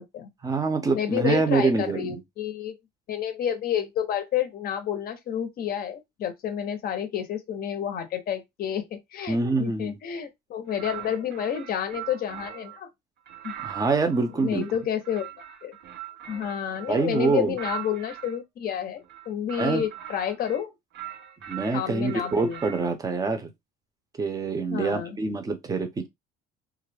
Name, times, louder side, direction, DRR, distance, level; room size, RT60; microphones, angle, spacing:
voice 1, 0.4-2.2 9.3-10.0 13.6-14.6 16.9-17.6 19.6-19.8 21.5-23.5 24.2-26.1, right 4 dB, 20° right, 0.6 m, -25 dB
voice 2, 0.9-2.8 3.1-12.9 13.4-13.5 14.4-15.3 15.6-15.8 16.3-20.7 21.7-22.6 24.7-25.2, left 9 dB, 50° left, 0.6 m, -30 dB
sound 1, 10.7-12.8 13.3-18.4 19.0-20.6 20.9-22.9, right 11 dB, 60° right, 0.6 m, -40 dB
2.4 x 2.0 x 3.2 m
cardioid pair, 125°, 20 cm